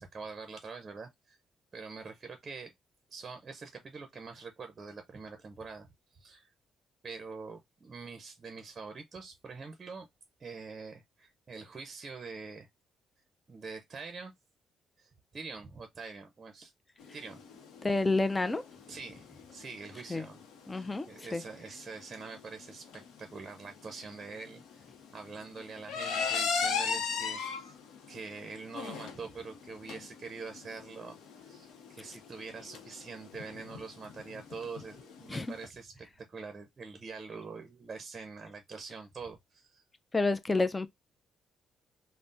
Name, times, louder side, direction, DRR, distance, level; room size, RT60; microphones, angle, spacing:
voice 1, 0.0-1.4 1.7-2.7 3.1-6.5 7.0-10.1 10.4-12.7 13.5-14.3 15.0-16.7 17.1-17.4 18.9-20.4 20.7-27.7 28.1-39.8, right 4 dB, 35° right, 0.6 m, -45 dB
sound 1, 17.0-35.6, left 5 dB, 85° left, 0.6 m, -38 dB
voice 2, 17.8-18.6 20.1-20.2 20.7-21.1 21.3-21.4 35.3-35.5 40.1-40.9, left 3 dB, 20° left, 0.3 m, -28 dB
3.3 x 2.0 x 2.5 m
cardioid pair, 90°, 0 cm